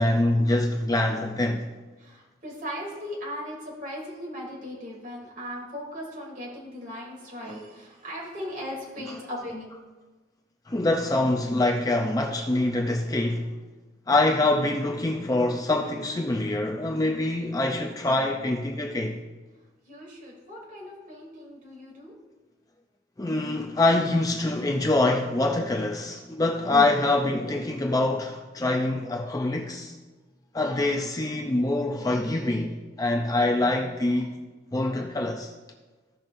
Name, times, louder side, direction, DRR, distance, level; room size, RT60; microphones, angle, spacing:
voice 1, 0.0-1.6 10.7-13.5 14.1-19.2 23.2-30.0 30.5-34.4 34.7-35.5, left 2 dB, 20° left, 0.5 m, -25 dB
voice 2, 2.0-9.7 19.8-22.1, equal, 45° right, 3.1 m, -38 dB
15.5 x 5.8 x 2.6 m
head